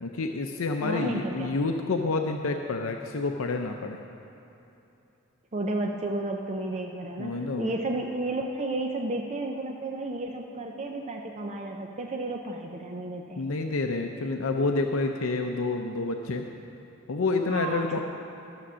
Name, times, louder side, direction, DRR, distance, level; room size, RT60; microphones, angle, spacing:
voice 1, 0.0-4.0 7.2-7.7 13.4-16.5 17.1-18.0, left 3 dB, 70° left, 4 dB, 0.6 m, -28 dB
voice 2, 0.8-1.5 5.5-13.5 17.5-18.0, right 2 dB, 30° right, 2 dB, 0.6 m, -32 dB
12.5 x 7.0 x 6.2 m, 2.9 s
head